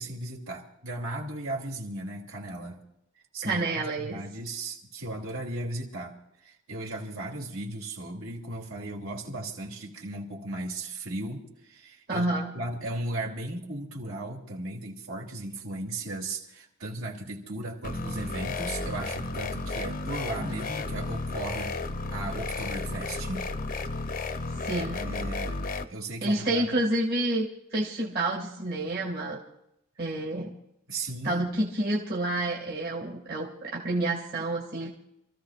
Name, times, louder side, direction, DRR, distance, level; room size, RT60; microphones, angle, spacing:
voice 1, 0.0-2.8 3.3-6.1 6.4-12.3 12.5-21.7 22.1-23.5 24.0-24.4 24.7-26.8 30.9-31.4, right 2 dB, 75° right, -1 dB, 2.9 m, -36 dB
voice 2, 3.4-4.2 12.1-12.5 24.7-25.0 26.2-27.4 27.7-29.4 30.0-30.5 31.2-34.9, right 1 dB, 50° right, -2 dB, 2.2 m, -29 dB
sound 1, 17.8-25.8, left 3 dB, 45° left, 0.8 m, -33 dB
28.5 x 14.5 x 2.5 m, 0.81 s
head